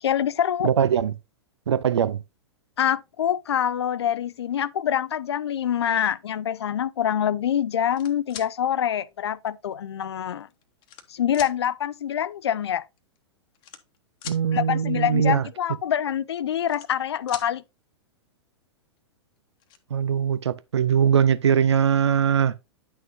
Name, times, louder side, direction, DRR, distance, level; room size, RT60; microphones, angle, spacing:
voice 1, 0.0-0.7 2.8-10.5 11.1-12.8 14.5-17.6, left 9 dB, 70° left, 0.4 m, -25 dB
voice 2, 0.6-1.1 1.7-2.2 14.3-15.4 19.9-22.5, right 8 dB, 75° right, 0.6 m, -21 dB
sound 1, 7.7-8.5 9.5-9.6 10.4-11.1 11.3-11.5 12.7-12.8 13.0-13.2 13.5-14.4 16.3-17.0 17.3-17.5 19.0-19.1 19.4-19.8, left 10 dB, 30° left, 1.0 m, -40 dB
9.6 x 6.2 x 2.7 m
figure-of-eight pair, 105°, 15 cm